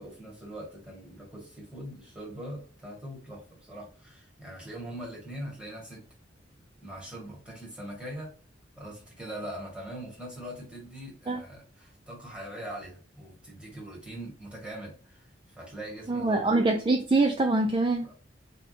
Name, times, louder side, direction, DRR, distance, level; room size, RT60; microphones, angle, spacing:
voice 1, 0.0-6.0 6.8-8.3 8.8-16.5 18.0-18.1, right 1 dB, 5° right, -4 dB, 1.9 m, -42 dB
voice 2, 16.1-18.1, right 2 dB, 25° right, 4 dB, 0.4 m, -24 dB
4.2 x 3.6 x 2.8 m, 0.42 s
head